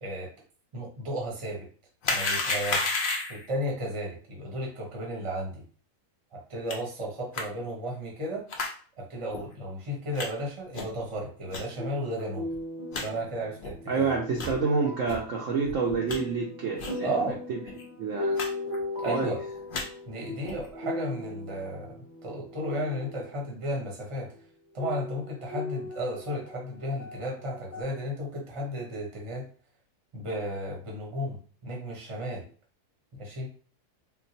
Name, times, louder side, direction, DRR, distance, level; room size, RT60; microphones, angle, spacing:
voice 1, 0.7-1.7 2.1-2.9 3.3-5.6 6.3-8.5 9.0-12.5 13.0-14.2 17.0-17.4 19.0-19.4 20.1-24.3 24.7-29.5 30.1-32.5 33.1-33.5, equal, 25° right, -1 dB, 0.7 m, -34 dB
sound 1, 2.0-3.5 6.7-6.8 7.3-7.4 8.5-8.7 9.3-9.4 10.2-10.3 10.7-11.0 11.5-11.6 12.2-12.3 12.5-12.6 12.9-13.1 13.6-13.7 14.3-14.6 15.1-15.2 15.6-16.2 16.8-17.0 17.3-17.4 17.6-17.8 18.3-18.5 18.7-19.1 19.5-19.8 20.4-20.7, left 3 dB, 85° left, 0.4 m, -31 dB
sound 2, 11.4-23.4 24.3-24.4 24.8-27.8, left 2 dB, 35° left, 0.9 m, -38 dB
voice 2, 13.9-17.6 18.0-18.4 19.1-19.3, right 4 dB, 65° right, -1 dB, 0.8 m, -28 dB
3.7 x 2.3 x 2.7 m, 0.42 s
omnidirectional pair, 1.7 m